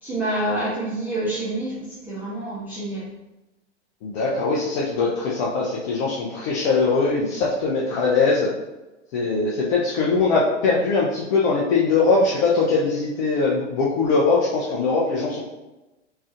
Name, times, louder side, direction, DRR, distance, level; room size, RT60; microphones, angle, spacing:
voice 1, 0.0-3.0, right 1 dB, 5° right, -10 dB, 0.6 m, -27 dB
voice 2, 4.0-8.5 9.1-15.4, left 4 dB, 35° left, -5 dB, 0.5 m, -21 dB
3.6 x 3.2 x 2.5 m, 1.0 s
figure-of-eight pair, 95°, 37 cm